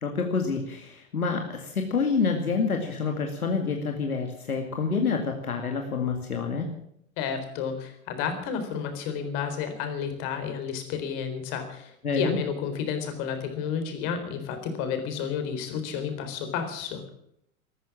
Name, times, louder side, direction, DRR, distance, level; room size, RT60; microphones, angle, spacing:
voice 1, 0.0-6.7 12.0-12.4, left 5 dB, 80° left, 3 dB, 2.2 m, -27 dB
voice 2, 7.2-17.1, left 7 dB, 50° left, 7 dB, 4.1 m, -31 dB
14.0 x 14.0 x 7.4 m, 0.72 s
figure-of-eight pair, 90°, 43 cm